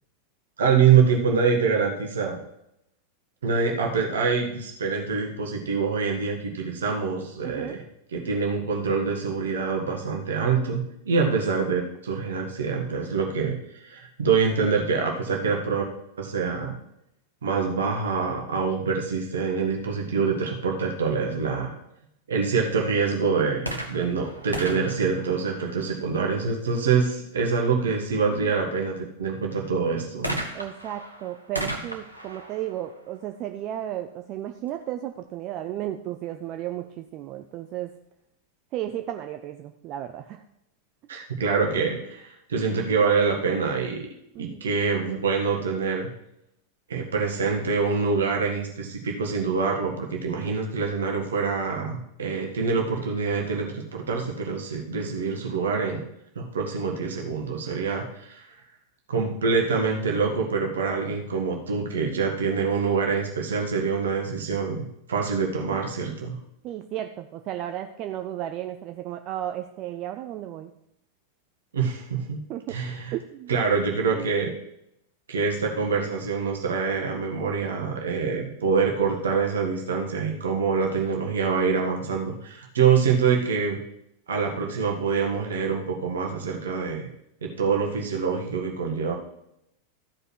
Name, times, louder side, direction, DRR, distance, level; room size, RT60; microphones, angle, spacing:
voice 1, 0.6-2.4 3.4-7.8 8.1-15.8 16.2-16.7 17.4-21.7 22.3-30.3 41.1-44.1 44.4-46.1 46.9-56.0 56.3-58.5 59.1-64.8 65.1-66.4 71.7-72.4 72.7-73.1 73.5-74.5 75.3-83.8 84.3-87.1 87.4-89.1, right 5 dB, 65° right, 0 dB, 1.7 m, -25 dB
voice 2, 7.4-7.8 11.2-11.4 15.4-15.5 28.3-28.6 30.5-37.9 38.7-40.4 42.9-43.0 44.3-44.7 50.3-50.5 66.6-70.7 72.5-72.8 73.1-73.6 74.1-74.3, right 12 dB, 35° right, 7 dB, 0.6 m, -34 dB
sound 1, 23.6-26.2 30.2-33.9 34.7-34.8, right 1 dB, 85° right, 1.3 m, -36 dB
13.5 x 5.5 x 6.2 m, 0.80 s
figure-of-eight pair, 90°, 0 cm